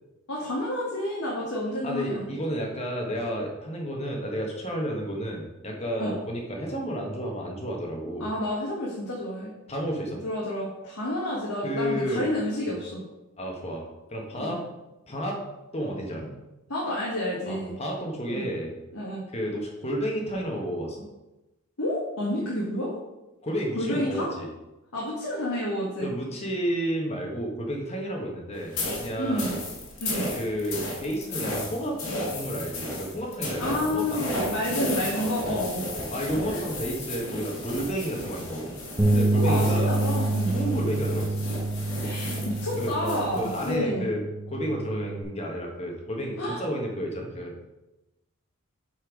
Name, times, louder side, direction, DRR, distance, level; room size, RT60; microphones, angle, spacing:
voice 1, 0.3-2.3 6.0-6.1 8.2-9.5 10.2-13.0 14.4-14.6 16.7-17.7 18.3-18.4 18.9-19.2 21.8-22.9 23.7-24.3 24.9-26.1 29.2-29.6 30.0-30.3 33.6-35.8 36.5-36.6 39.3-40.5 42.0-44.1 46.4-46.6, left 1 dB, 85° left, -5 dB, 1.6 m, -29 dB
voice 2, 1.8-8.3 9.7-10.2 11.6-12.3 13.4-13.8 14.1-14.6 15.1-15.4 15.7-16.3 17.5-18.7 19.3-21.0 23.4-24.5 26.0-28.7 29.0-29.6 30.3-32.0 32.3-34.3 35.1-35.6 36.1-38.7 39.1-39.9 40.5-41.5 42.7-44.2 44.5-47.5, equal, 30° left, 0 dB, 1.2 m, -31 dB
sound 1, 28.7-43.8, left 1 dB, 70° left, 2.0 m, -34 dB
Bass guitar, 39.0-45.2, right 2 dB, 20° right, 0.9 m, -27 dB
7.9 x 4.4 x 5.0 m, 1.0 s
head